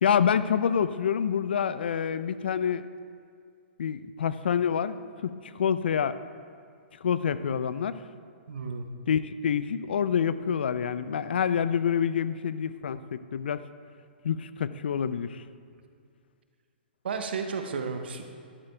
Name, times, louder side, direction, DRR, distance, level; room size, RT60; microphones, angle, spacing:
voice 1, 0.0-2.9 3.8-5.0 5.2-6.2 7.0-8.0 9.1-13.7 14.2-15.4, left 7 dB, 70° left, 14 dB, 0.4 m, -27 dB
voice 2, 8.5-8.9 15.7-15.8 17.0-18.2, right 5 dB, 70° right, 5 dB, 0.9 m, -33 dB
13.5 x 11.5 x 2.3 m, 2.3 s
figure-of-eight pair, 120°, 6 cm